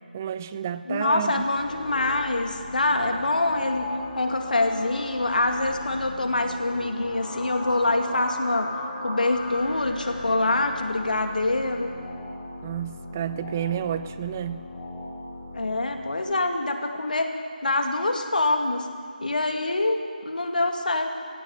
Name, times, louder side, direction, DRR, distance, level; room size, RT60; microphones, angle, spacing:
voice 1, 0.1-1.4 12.6-14.6, right 9 dB, 15° right, 14 dB, 0.4 m, -30 dB
voice 2, 0.9-3.9 4.2-8.7 9.0-11.9 15.5-17.3 17.6-18.9 19.2-21.1, left 2 dB, 60° left, 4 dB, 2.4 m, -25 dB
sound 1, 1.3-16.3, left 2 dB, 30° left, 4.7 m, -37 dB
19.5 x 16.5 x 8.3 m, 2.2 s
figure-of-eight pair, 160°, 5 cm